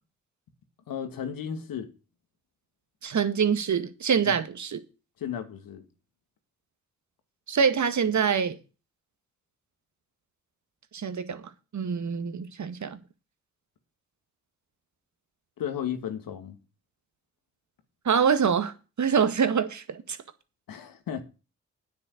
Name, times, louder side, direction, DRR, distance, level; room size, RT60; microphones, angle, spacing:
voice 1, 0.9-1.9 5.2-5.8 15.6-16.6 20.7-21.2, left 8 dB, 70° left, 2.2 m, -34 dB
voice 2, 3.0-4.8 7.5-8.6 10.9-11.4 11.7-13.0 18.1-20.2, right 6 dB, 50° right, 1.8 m, -25 dB
9.6 x 8.5 x 6.6 m
hypercardioid pair, 40°, 36 cm